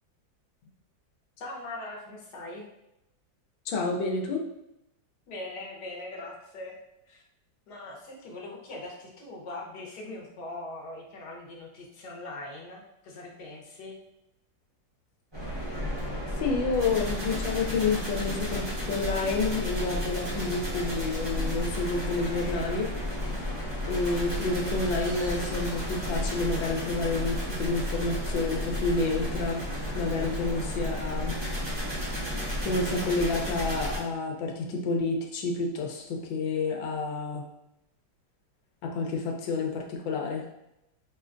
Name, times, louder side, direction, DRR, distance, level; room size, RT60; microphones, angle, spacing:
voice 1, 1.4-2.7 5.3-6.8 7.1-7.2 7.7-14.0, left 2 dB, 65° left, -2 dB, 1.3 m, -41 dB
voice 2, 3.6-4.4 16.3-22.9 23.9-29.7 29.9-31.4 32.6-37.4 38.8-40.5, left 3 dB, 85° left, 1 dB, 1.4 m, -29 dB
sound 1, 15.3-34.0, left 1 dB, 35° right, 0.4 m, -32 dB
Crash cymbal, 24.5-27.5, right 2 dB, 70° right, 1.0 m, -50 dB
5.0 x 2.2 x 2.5 m, 0.85 s
omnidirectional pair, 2.0 m